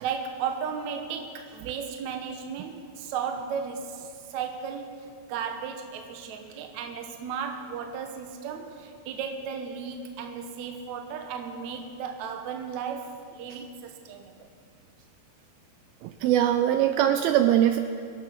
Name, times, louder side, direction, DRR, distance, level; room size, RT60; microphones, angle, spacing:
voice 1, 0.0-14.4, right 6 dB, 70° right, 4 dB, 1.8 m, -35 dB
voice 2, 16.0-17.8, right 11 dB, 85° right, 9 dB, 2.1 m, -22 dB
24.0 x 8.8 x 5.8 m, 2.4 s
omnidirectional pair, 4.7 m